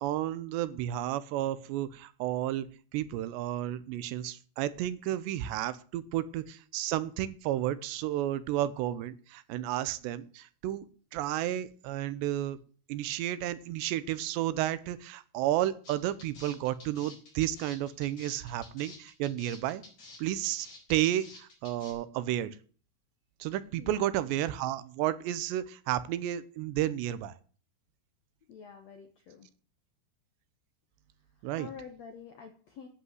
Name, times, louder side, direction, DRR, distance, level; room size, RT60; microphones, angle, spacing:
voice 1, 0.0-2.7 2.9-10.9 11.1-12.6 12.9-19.8 20.2-22.6 23.4-27.3 31.4-31.7, right 13 dB, 85° right, 15 dB, 3.0 m, -32 dB
sound 1, 15.8-21.9, left 3 dB, 35° left, 5.0 m, -50 dB
voice 2, 23.8-24.2 28.5-29.5 31.5-32.9, left 6 dB, 70° left, 5 dB, 1.6 m, -47 dB
11.0 x 8.3 x 7.9 m, 0.42 s
omnidirectional pair, 4.9 m